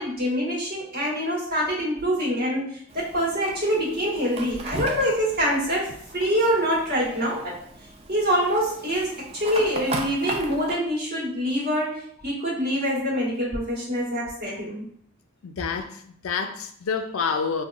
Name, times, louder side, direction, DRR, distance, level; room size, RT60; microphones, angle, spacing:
voice 1, 0.0-7.5 8.1-14.8, equal, 45° right, 1.4 m, -25 dB
Fire, 2.9-10.7, right 2 dB, 30° right, 0.4 m, -37 dB
voice 2, 15.4-17.6, left 5 dB, 65° left, 0.4 m, -28 dB
5.3 x 2.2 x 2.4 m
head